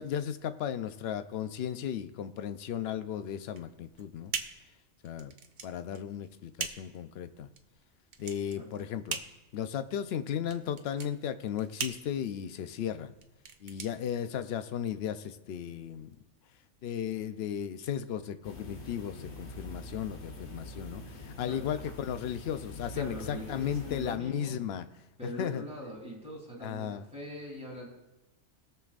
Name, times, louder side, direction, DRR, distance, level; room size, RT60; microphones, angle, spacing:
voice 1, 0.0-4.3 5.0-5.3 5.6-7.5 8.2-9.2 9.5-13.2 13.6-16.1 16.8-24.9 25.2-25.6 26.6-27.1, left 9 dB, 65° left, 11 dB, 0.8 m, -35 dB
sound 1, 3.5-14.8, right 5 dB, 45° right, 0.8 m, -42 dB
sound 2, 18.4-24.2, left 1 dB, 50° left, 1.3 m, -44 dB
voice 2, 22.9-24.6 25.2-27.9, equal, 5° right, -4 dB, 3.1 m, -42 dB
21.0 x 7.1 x 2.5 m, 0.97 s
omnidirectional pair, 1.2 m